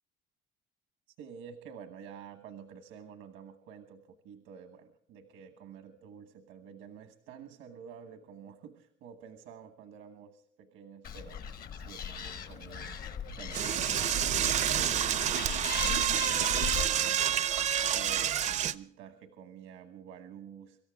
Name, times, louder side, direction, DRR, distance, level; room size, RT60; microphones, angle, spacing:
voice 1, 1.2-13.1 13.4-14.0 14.3-17.5 17.9-20.8, right 7 dB, 90° right, 8 dB, 1.3 m, -50 dB
Animal, 11.0-16.8, left 8 dB, 50° left, 1.2 m, -39 dB
Door / Toilet flush, 13.5-18.7, right 10 dB, 40° right, 0.5 m, -28 dB
25.0 x 13.5 x 3.5 m, 0.67 s
cardioid pair, 160°, 20 cm